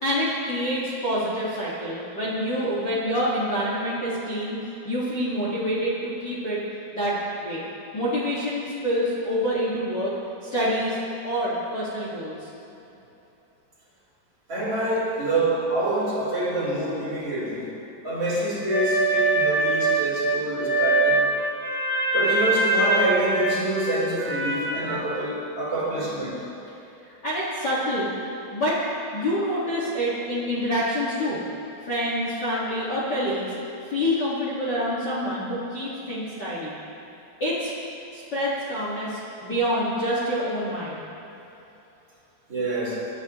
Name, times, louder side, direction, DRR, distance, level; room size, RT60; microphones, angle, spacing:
voice 1, 0.0-6.6 6.9-7.1 7.4-7.6 7.9-10.1 10.4-11.0 11.2-12.5 27.2-28.1 28.5-28.8 29.1-31.4 31.8-33.5 33.9-36.7 37.4-37.7 38.1-41.0, equal, 65° left, -8 dB, 1.0 m, -27 dB
voice 2, 14.5-17.8 18.0-21.2 22.1-26.4 35.2-35.3 42.5-43.1, right 1 dB, 25° right, -8 dB, 3.9 m, -26 dB
sound 1, 18.7-25.0, right 2 dB, 5° left, 2.7 m, -23 dB
23.5 x 12.0 x 3.1 m, 3.0 s
omnidirectional pair, 5.4 m